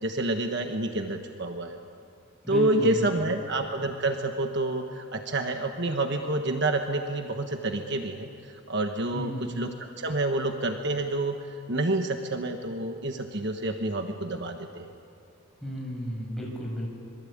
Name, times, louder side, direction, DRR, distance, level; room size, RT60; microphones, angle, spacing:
voice 1, 0.0-1.8 2.5-8.3 8.7-11.4 11.7-14.9, right 2 dB, 50° right, 5 dB, 1.4 m, -28 dB
voice 2, 2.4-3.3 9.1-9.6 15.6-16.9, equal, ahead, -3 dB, 6.6 m, -33 dB
26.0 x 23.0 x 8.8 m, 2.6 s
head